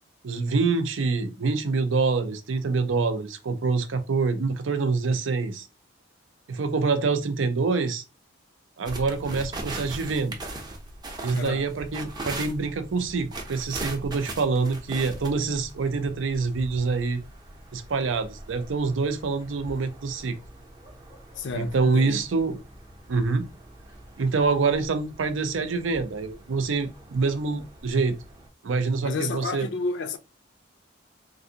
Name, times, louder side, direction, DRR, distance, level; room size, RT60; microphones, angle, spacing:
voice 1, 0.2-5.7 6.5-8.0 8.8-10.3 11.2-17.2 17.7-20.4 21.5-22.6 23.1-23.5 24.2-28.2 28.6-29.7, right 4 dB, 80° right, 0.5 m, -26 dB
sound 1, 8.8-28.5, right 2 dB, 20° right, 0.5 m, -41 dB
voice 2, 11.3-11.7 21.4-22.2 29.0-30.2, left 4 dB, 70° left, 0.5 m, -31 dB
3.3 x 2.5 x 2.7 m
head